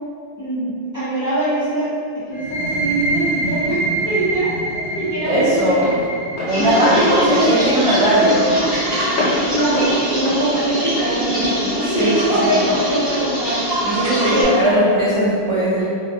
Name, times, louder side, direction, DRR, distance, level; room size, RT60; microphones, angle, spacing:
voice 1, 0.4-5.9 6.6-8.8 9.5-13.6 14.3-14.9, right 1 dB, 25° left, -12 dB, 0.4 m, -22 dB
sound 1, 2.3-9.8, right 2 dB, 80° right, 1.0 m, -27 dB
Walk footsteps, 3.0-11.7, left 2 dB, 55° left, 0.9 m, -30 dB
voice 2, 5.3-5.9 6.5-8.5 11.8-12.6 13.8-15.9, right 1 dB, 55° right, -9 dB, 0.3 m, -19 dB
sound 2, 6.5-14.4, equal, 5° left, 1.1 m, -23 dB
2.2 x 2.1 x 2.6 m, 2.3 s
omnidirectional pair, 1.1 m